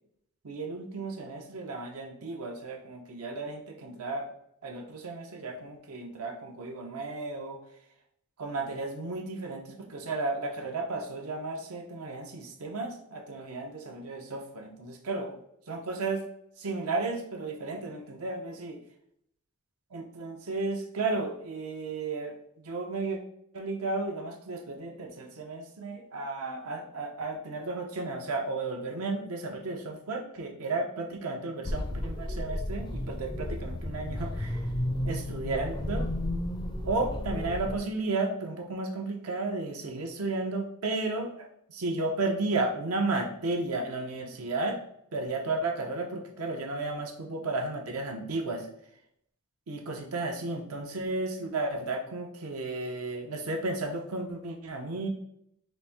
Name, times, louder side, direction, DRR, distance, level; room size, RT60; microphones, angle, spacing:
voice 1, 0.4-4.3 4.6-7.6 8.4-15.4 15.7-16.2 16.6-18.8 19.9-23.2 23.5-34.7 35.0-36.1 36.9-44.8 45.1-48.7 49.7-55.1, right 3 dB, 80° right, 2 dB, 0.7 m, -33 dB
sound 1, 31.6-37.8, left 1 dB, 20° left, 0.4 m, -33 dB
4.1 x 2.6 x 3.4 m, 0.71 s
head